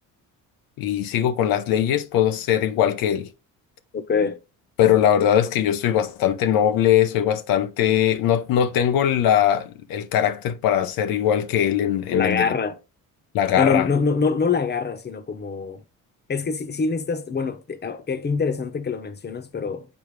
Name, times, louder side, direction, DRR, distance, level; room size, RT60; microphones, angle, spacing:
voice 1, 0.8-3.3 4.8-12.5 13.3-13.9, left 10 dB, 85° left, 0.7 m, -21 dB
voice 2, 3.9-4.4 12.1-12.8 13.6-15.8 16.3-19.9, left 5 dB, 30° left, 0.9 m, -24 dB
7.0 x 4.6 x 3.2 m
cardioid pair, 95°, 34 cm